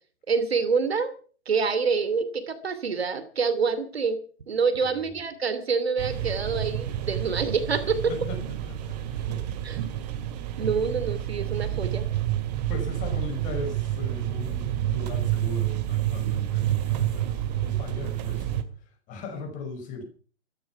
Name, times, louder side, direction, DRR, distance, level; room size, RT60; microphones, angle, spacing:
voice 1, 0.3-1.1 1.5-4.2 4.5-8.1 9.6-9.8 10.6-12.0, right 5 dB, 65° right, 12 dB, 2.7 m, -26 dB
sound 1, 6.0-18.6, right 12 dB, 35° right, 2.2 m, -29 dB
voice 2, 8.1-9.4 12.7-18.6 19.1-20.0, left 3 dB, 25° left, 6 dB, 5.6 m, -38 dB
14.5 x 14.0 x 5.9 m, 0.42 s
figure-of-eight pair, 120°, 34 cm